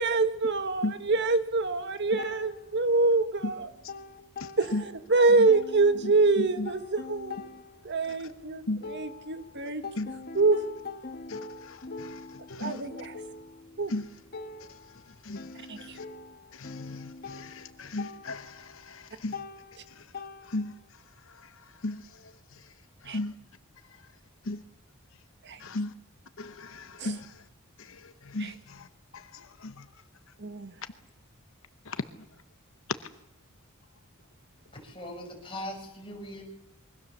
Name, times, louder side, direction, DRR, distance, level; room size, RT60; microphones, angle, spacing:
voice 1, 0.0-3.7 4.6-7.4 7.8-9.8 10.3-10.6 12.6-13.2 13.8-13.9 15.7-16.0 23.1-23.2 25.4-25.6 27.0-27.2 28.4-28.5 30.4-30.7, right 3 dB, 55° right, 10 dB, 1.6 m, -25 dB
sound 1, 2.2-3.3 3.6-5.1 5.5-9.5 9.8-20.9, left 3 dB, 45° left, 1.6 m, -43 dB
voice 2, 4.4-4.8 5.4-5.5 6.4-6.7 8.7-8.8 10.0-10.1 11.3-12.2 12.5-12.8 13.9-14.1 15.2-15.5 15.8-16.0 16.5-19.4 20.5-20.7 21.8-22.0 23.1-23.3 24.5-24.6 25.6-25.9 26.4-27.3 27.8-28.9 29.1-29.8 31.9-32.0, left 2 dB, 65° left, 11 dB, 1.0 m, -36 dB
voice 3, 34.8-36.4, left 1 dB, 25° left, 1 dB, 5.4 m, -40 dB
26.0 x 23.0 x 7.1 m, 0.84 s
head